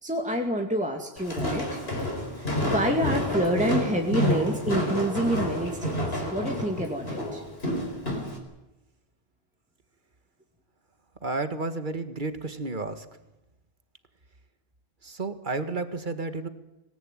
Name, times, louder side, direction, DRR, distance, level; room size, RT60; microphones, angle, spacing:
voice 1, 0.0-1.8 2.4-7.4, equal, 5° right, 1 dB, 2.3 m, -28 dB
Walk footsteps, 1.2-8.4, left 1 dB, 70° left, 5.1 m, -29 dB
voice 2, 11.2-13.1 15.0-16.5, right 3 dB, 50° right, 9 dB, 2.0 m, -31 dB
25.5 x 18.5 x 9.1 m, 0.98 s
omnidirectional pair, 1.1 m